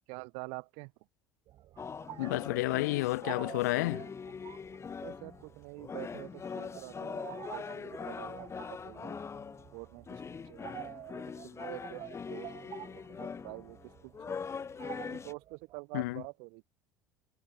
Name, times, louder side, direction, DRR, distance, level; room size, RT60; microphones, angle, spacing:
voice 1, 0.1-0.9 5.0-9.2 9.7-11.0 11.4-14.5 15.0-16.6, right 39 dB, 70° right, 1.0 m, -47 dB
sound 1, 1.5-15.8, right 13 dB, 55° right, 5.5 m, -50 dB
sound 2, 1.8-5.5 5.8-15.3, left 6 dB, 30° left, 1.5 m, -42 dB
voice 2, 2.2-4.1 15.9-16.2, left 20 dB, 80° left, 0.5 m, -30 dB
hypercardioid pair, 75°, 9 cm